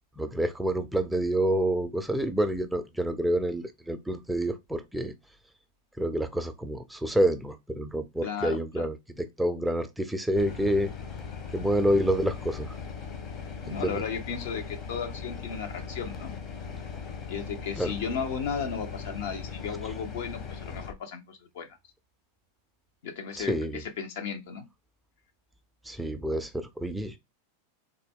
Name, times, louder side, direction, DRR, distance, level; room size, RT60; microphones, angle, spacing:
voice 1, 0.2-5.1 6.0-10.9 11.5-12.7 13.6-14.0 17.8-17.9 23.4-23.8 25.9-27.2, right 1 dB, 5° right, 0.5 m, -28 dB
voice 2, 8.2-8.9 13.6-16.3 17.3-21.7 23.0-24.6, left 6 dB, 70° left, 0.9 m, -35 dB
sound 1, 10.4-20.9, left 6 dB, 35° left, 1.0 m, -39 dB
3.7 x 2.2 x 3.5 m
hypercardioid pair, 110°, 0 cm